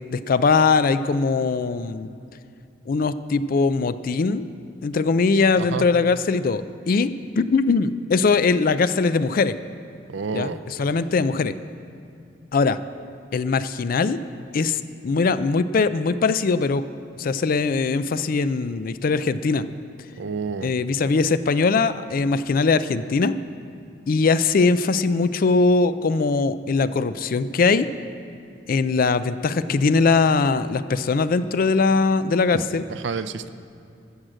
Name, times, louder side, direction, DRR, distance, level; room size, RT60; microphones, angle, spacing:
voice 1, 0.1-2.1 2.9-4.5 4.8-9.6 10.3-11.5 12.5-12.8 13.3-14.2 14.5-16.9 17.2-19.7 20.6-23.4 24.1-27.9 28.7-32.8, left 4 dB, 50° left, 14 dB, 0.4 m, -21 dB
voice 2, 5.6-5.9 10.1-10.6 20.2-20.7 32.9-33.5, right 5 dB, 70° right, 13 dB, 0.5 m, -29 dB
14.0 x 6.4 x 7.5 m, 2.5 s
head